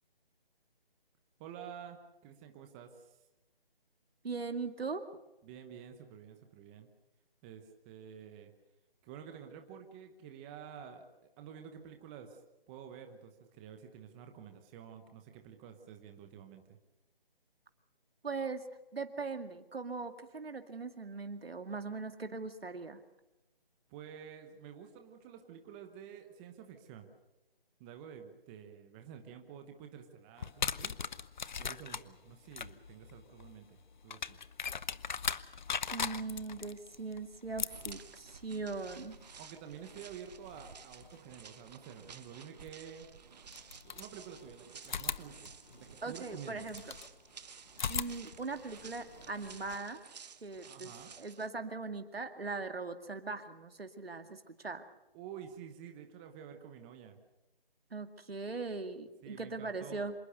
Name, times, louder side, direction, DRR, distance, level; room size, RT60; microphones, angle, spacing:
voice 1, 1.4-3.2 5.4-6.9 7.4-8.5 9.0-11.0 11.4-12.4 12.7-16.8 23.9-27.1 27.8-31.0 31.6-34.4 39.4-43.1 43.8-45.5 45.8-46.7 50.6-51.1 55.1-57.2 59.2-60.1, right 8 dB, 10° right, 6 dB, 0.9 m, -50 dB
voice 2, 4.2-5.0 18.2-18.6 18.9-23.0 35.9-39.2 46.0-46.9 47.9-50.0 50.4-54.8 57.9-60.1, right 4 dB, 85° right, 7 dB, 2.2 m, -40 dB
sound 1, 30.4-41.2 42.7-42.8 43.5-44.5 44.8-47.1 47.7-49.8, left 6 dB, 50° left, 0.9 m, -41 dB
sound 2, 37.7-51.5, right 6 dB, 45° right, 1.3 m, -54 dB
26.5 x 19.5 x 6.8 m, 0.97 s
figure-of-eight pair, 160°, 29 cm